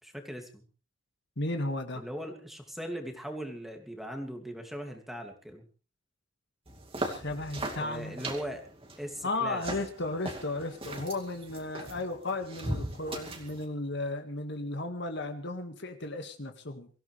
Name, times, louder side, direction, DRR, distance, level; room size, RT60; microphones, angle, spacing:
voice 1, 0.0-0.6 1.9-5.6 7.8-8.6 9.0-9.6, equal, ahead, 3 dB, 2.6 m, -39 dB
voice 2, 1.4-2.0 7.0-8.2 9.2-16.9, left 2 dB, 55° left, 6 dB, 2.0 m, -34 dB
sound 1, 6.7-13.6, right 1 dB, 25° right, 2.5 m, -39 dB
24.0 x 16.0 x 3.4 m, 0.36 s
head